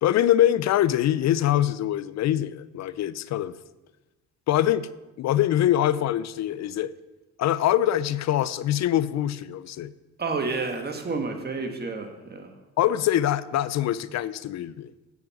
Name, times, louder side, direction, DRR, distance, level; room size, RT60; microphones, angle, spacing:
voice 1, 0.0-3.6 4.5-4.9 5.2-6.9 7.4-9.9 12.8-14.9, left 12 dB, 60° left, 17 dB, 0.5 m, -23 dB
voice 2, 10.2-12.5, right 4 dB, 35° right, 5 dB, 1.5 m, -30 dB
7.9 x 7.2 x 5.9 m, 1.1 s
cardioid pair, 90°, 30 cm